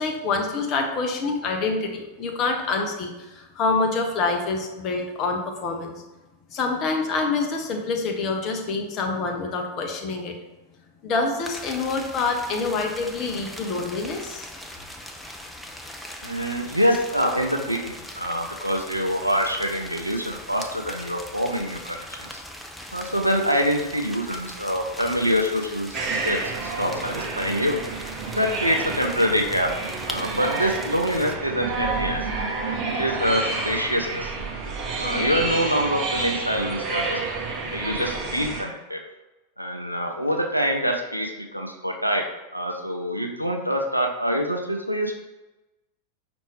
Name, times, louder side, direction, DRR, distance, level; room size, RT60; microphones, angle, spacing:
voice 1, 0.0-5.9 6.5-10.3 11.0-14.5, left 3 dB, 35° left, 3 dB, 0.7 m, -26 dB
sound 1, 11.4-31.4, left 1 dB, 5° left, 0.4 m, -40 dB
voice 2, 16.2-22.4 22.9-27.8 28.3-29.7 30.1-34.3 35.0-37.2 37.7-39.0 39.6-42.3 42.5-45.2, equal, 90° right, 3 dB, 0.5 m, -25 dB
sound 2, 25.9-38.6, right 3 dB, 35° right, 0.7 m, -29 dB
5.4 x 2.6 x 3.3 m, 1.1 s
figure-of-eight pair, 90°, 0 cm